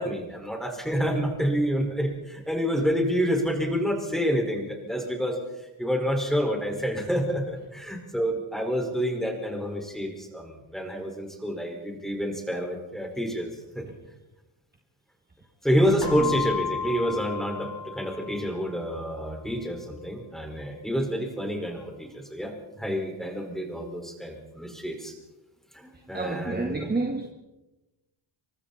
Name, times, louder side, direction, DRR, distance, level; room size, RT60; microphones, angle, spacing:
voice 1, 0.0-5.4 5.8-13.5 13.7-13.8 15.6-25.1 25.7-26.9, equal, ahead, 5.1 m, -28 dB
Keyboard (musical), 16.0-18.7, left 7 dB, 55° left, 6.9 m, -33 dB
voice 2, 16.0-16.4 25.9-27.3, right 3 dB, 20° right, 2.0 m, -30 dB
28.5 x 24.5 x 4.3 m
cardioid pair, 150°, 50 cm